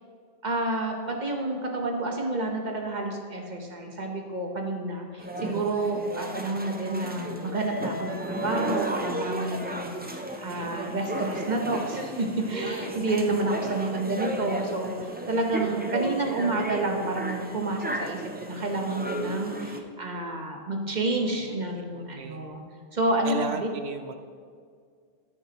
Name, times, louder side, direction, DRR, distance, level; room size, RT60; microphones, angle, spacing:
voice 1, 0.4-22.6 22.9-23.7, right 2 dB, 40° right, 2 dB, 1.1 m, -29 dB
sound 1, 5.2-19.8, right 1 dB, 15° right, 0.3 m, -34 dB
voice 2, 11.5-12.1 21.2-22.6 23.2-24.2, right 4 dB, 70° right, 7 dB, 0.9 m, -37 dB
14.0 x 6.2 x 2.9 m, 2.1 s
omnidirectional pair, 1.2 m